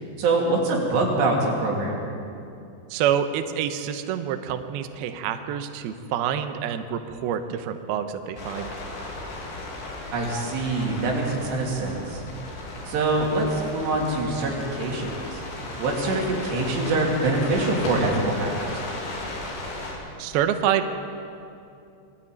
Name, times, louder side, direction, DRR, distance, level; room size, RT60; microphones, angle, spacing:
voice 1, 0.2-2.0 10.1-12.2 12.9-15.4 15.8-18.8, right 2 dB, 60° right, -1 dB, 4.8 m, -24 dB
voice 2, 2.9-8.7 20.2-21.0, right 9 dB, 90° right, 8 dB, 2.1 m, -27 dB
sound 1, 8.4-19.9, left 2 dB, 65° left, 5.6 m, -35 dB
22.0 x 13.5 x 9.2 m, 2.6 s
omnidirectional pair, 5.9 m